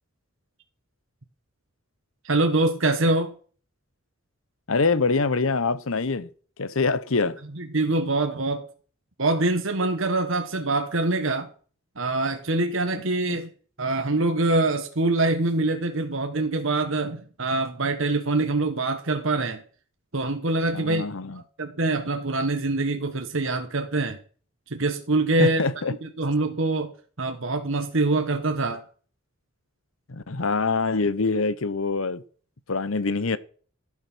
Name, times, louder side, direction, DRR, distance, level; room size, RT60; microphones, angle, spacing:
voice 1, 2.2-3.3 7.6-8.7 9.2-11.5 12.0-13.5 13.8-19.6 20.1-24.2 24.7-25.6 26.0-26.9 27.2-28.8, right 2 dB, 65° right, 1.4 m, -24 dB
voice 2, 4.7-6.3 6.6-7.4 13.3-13.4 20.7-21.4 25.4-26.0 30.1-32.2 32.7-33.4, left 4 dB, 70° left, 0.9 m, -25 dB
15.5 x 8.6 x 6.2 m
head